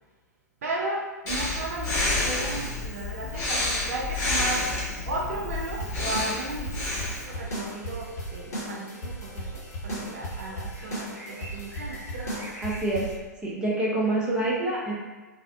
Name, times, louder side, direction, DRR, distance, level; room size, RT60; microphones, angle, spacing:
voice 1, 0.6-4.7 5.1-6.7 7.2-12.5, right 2 dB, 55° right, -2 dB, 0.4 m, -35 dB
Breathing, 1.3-7.2, left 2 dB, 30° left, 0.7 m, -29 dB
sound 1, 5.5-13.1, equal, 55° left, 0.9 m, -36 dB
sound 2, 6.9-12.8, right 1 dB, 80° right, 0.7 m, -48 dB
voice 2, 12.6-13.1 13.4-14.9, right 2 dB, 10° right, -6 dB, 0.6 m, -26 dB
2.4 x 2.0 x 2.6 m, 1.2 s
figure-of-eight pair, 105°, 10 cm